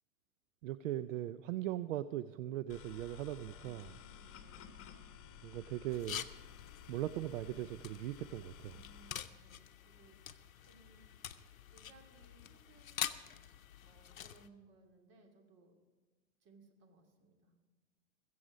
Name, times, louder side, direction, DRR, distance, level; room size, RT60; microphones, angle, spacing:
voice 1, 0.6-4.0 5.4-6.2 6.9-8.7, right 13 dB, 70° right, 14 dB, 0.5 m, -39 dB
sound 1, 2.7-9.1, left 8 dB, 35° left, 1.4 m, -54 dB
voice 2, 4.0-4.6 8.7-10.2 10.7-11.1 11.7-13.2 13.8-15.8 16.4-17.6, right 3 dB, 40° right, 2 dB, 2.6 m, -64 dB
sound 2, 5.9-14.5, left 10 dB, 90° left, 0.7 m, -46 dB
21.0 x 7.8 x 5.1 m, 1.3 s
hypercardioid pair, 100°, 40 cm